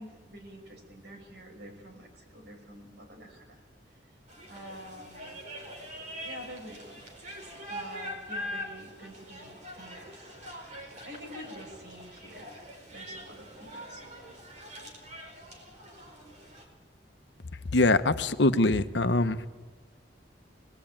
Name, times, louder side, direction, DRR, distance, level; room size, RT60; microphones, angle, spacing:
voice 1, 0.0-3.6 4.5-5.3 6.2-7.1 7.7-10.4 11.0-12.5 12.9-14.0, equal, 70° right, 2 dB, 6.0 m, -47 dB
sound 1, 4.3-16.6, equal, 45° right, 4.6 m, -43 dB
voice 2, 17.7-19.5, left 2 dB, 75° left, 9 dB, 1.1 m, -23 dB
24.0 x 19.5 x 8.9 m, 1.3 s
head